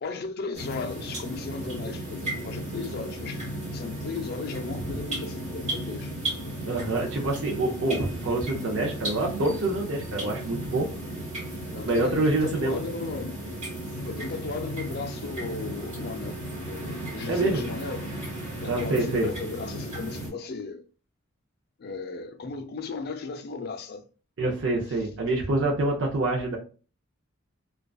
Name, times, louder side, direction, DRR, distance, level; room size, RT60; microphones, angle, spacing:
voice 1, 0.0-6.1 6.6-6.8 11.7-13.4 14.0-18.1 18.6-20.8 21.8-24.0, left 4 dB, 45° left, 0.3 m, -36 dB
sound 1, 0.5-20.3, right 1 dB, 30° right, 1.1 m, -35 dB
voice 2, 6.7-10.9 11.8-12.8 17.3-17.6 18.6-19.3 24.4-26.6, right 2 dB, 65° right, 0.5 m, -26 dB
2.4 x 2.2 x 2.3 m
head